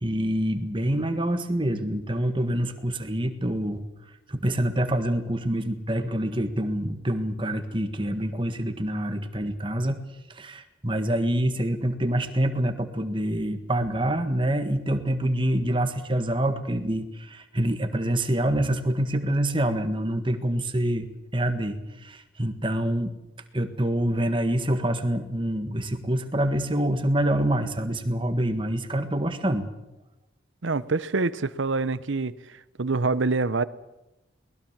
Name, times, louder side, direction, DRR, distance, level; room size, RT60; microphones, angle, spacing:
voice 1, 0.0-3.8 4.3-10.0 10.3-21.1 21.3-23.1 23.5-29.7, right 1 dB, 25° right, 8 dB, 1.6 m, -26 dB
voice 2, 30.6-32.3 32.8-33.6, right 3 dB, 75° right, 16 dB, 0.8 m, -25 dB
22.5 x 20.0 x 7.4 m, 0.97 s
head